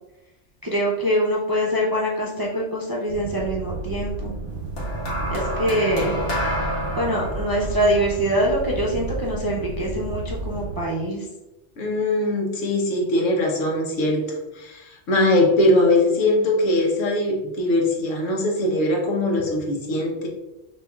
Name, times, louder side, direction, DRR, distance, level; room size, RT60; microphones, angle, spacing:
voice 1, 0.6-4.3 5.3-6.2 7.0-11.2, equal, 30° right, -3 dB, 0.4 m, -24 dB
sound 1, 3.1-10.9, right 3 dB, 50° right, 0.8 m, -32 dB
sound 2, 4.8-9.2 10.1-10.4, equal, 65° left, 1.7 m, -29 dB
voice 2, 11.8-14.2 14.5-20.3, left 1 dB, 80° left, 0 dB, 1.3 m, -21 dB
6.3 x 2.8 x 2.3 m, 0.98 s
omnidirectional pair, 1.3 m